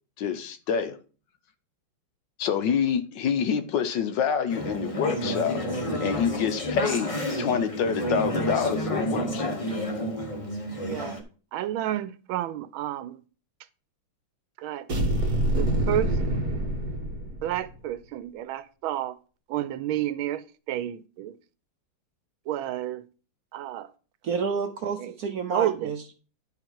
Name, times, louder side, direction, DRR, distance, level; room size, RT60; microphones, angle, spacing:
voice 1, 0.2-1.0 2.4-9.6, left 7 dB, 70° left, 1.3 m, -27 dB
Conversation / Chatter, 4.5-11.2, equal, 25° left, 0.8 m, -30 dB
voice 2, 10.9-11.2 11.5-13.2 14.6-14.9 15.6-16.2 17.4-19.2 19.5-21.4 22.5-23.0 23.5-23.9 25.0-25.1 25.5-25.9, right 12 dB, 90° right, 1.4 m, -30 dB
sound 1, 14.9-17.7, right 1 dB, 50° right, 2.2 m, -26 dB
voice 3, 24.2-26.1, right 5 dB, 70° right, 0.9 m, -29 dB
10.5 x 3.9 x 4.5 m
omnidirectional pair, 2.2 m